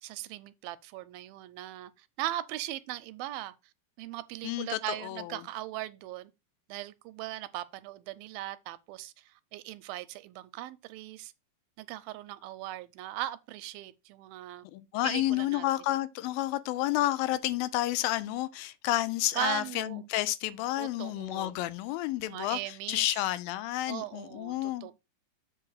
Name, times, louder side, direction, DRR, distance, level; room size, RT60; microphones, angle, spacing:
voice 1, 0.0-3.5 4.0-6.3 6.7-11.3 11.8-14.7 15.0-16.0 19.3-20.0 20.8-21.7 22.2-23.2 23.9-24.9, right 15 dB, 90° right, 2.4 m, -39 dB
voice 2, 4.4-5.3 14.7-22.6 22.9-24.9, left 15 dB, 85° left, 2.3 m, -30 dB
7.6 x 3.6 x 6.4 m
omnidirectional pair, 4.1 m